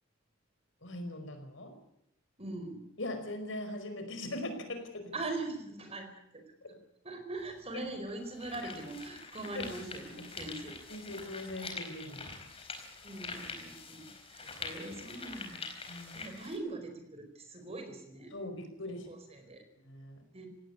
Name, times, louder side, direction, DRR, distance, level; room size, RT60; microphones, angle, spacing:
voice 1, 0.8-1.7 3.0-5.1 6.6-6.8 7.7-7.8 8.6-8.7 9.5-9.7 10.9-12.4 14.4-14.5 15.9-16.2 18.3-19.1 19.8-20.2, left 1 dB, 65° left, 7 dB, 5.0 m, -41 dB
voice 2, 2.4-2.8 5.1-6.4 7.0-10.8 13.0-15.7 16.1-18.3 18.9-19.6 20.3-20.5, right 2 dB, 30° right, 6 dB, 4.6 m, -42 dB
sound 1, 7.4-7.5 8.1-16.6, left 4 dB, 30° left, 4.2 m, -45 dB
18.5 x 18.0 x 9.9 m, 0.78 s
head